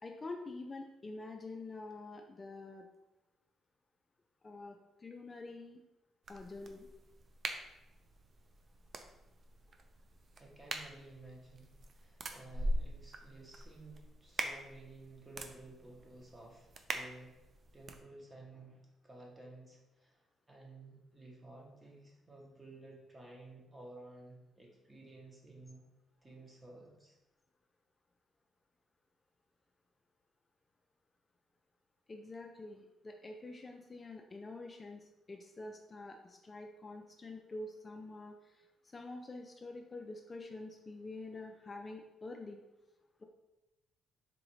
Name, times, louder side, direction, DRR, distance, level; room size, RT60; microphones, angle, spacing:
voice 1, 0.0-2.8 4.4-5.8 6.3-6.9 32.1-38.7 38.9-42.6 43.2-43.3, left 2 dB, 30° left, 3 dB, 0.3 m, -47 dB
sound 1, 6.2-18.0, right 1 dB, 50° right, 0.4 m, -43 dB
voice 2, 10.4-17.4 17.7-25.8 26.2-27.2, right 2 dB, 20° right, -1 dB, 1.0 m, -54 dB
4.0 x 2.5 x 3.0 m, 0.98 s
cardioid pair, 90°, 0 cm